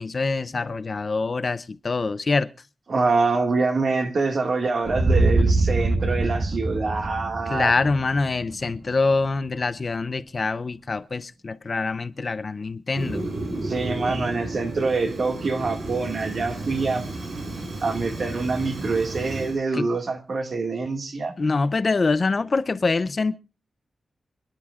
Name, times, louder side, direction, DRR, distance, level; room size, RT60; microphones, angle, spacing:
voice 1, 0.0-2.5 7.5-13.3 19.7-19.9 21.4-23.4, left 3 dB, 40° left, 0.5 m, -25 dB
voice 2, 2.9-7.7 13.6-17.0 17.8-21.4, right 3 dB, 55° right, 1.9 m, -25 dB
sound 1, 4.9-8.9, right 2 dB, 35° right, 1.4 m, -23 dB
Fire, 12.9-19.6, right 2 dB, 85° right, 4.7 m, -32 dB
26.5 x 10.5 x 2.4 m
wide cardioid pair, 120°, 0 cm